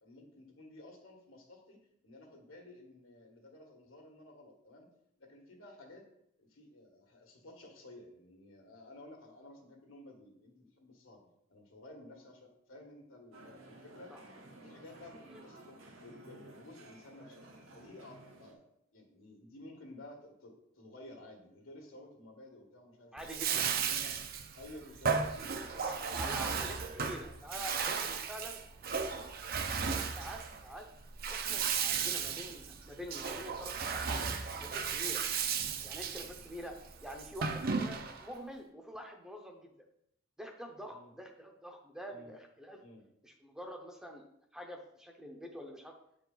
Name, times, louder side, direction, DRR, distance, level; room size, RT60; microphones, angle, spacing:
voice 1, 0.0-1.8 2.0-4.9 5.2-6.1 6.4-14.1 14.6-17.4 17.7-18.6 18.9-23.1 23.5-24.3 24.5-26.9 36.2-36.4 40.9-41.1 42.1-42.3 42.8-43.0, left 1 dB, 80° left, 1 dB, 1.8 m, -54 dB
sound 1, 13.3-18.5, right 2 dB, 80° right, 1.2 m, -54 dB
voice 2, 23.1-23.6 25.8-28.6 29.1-29.2 29.7-30.9 31.3-34.2 34.4-35.2 35.8-39.7 40.4-42.8 43.2-44.2 44.5-45.9, equal, 5° right, 2 dB, 0.6 m, -46 dB
Bathtub (filling or washing), 23.2-38.3, right 6 dB, 45° right, 0.5 m, -35 dB
7.7 x 4.9 x 3.9 m, 0.73 s
head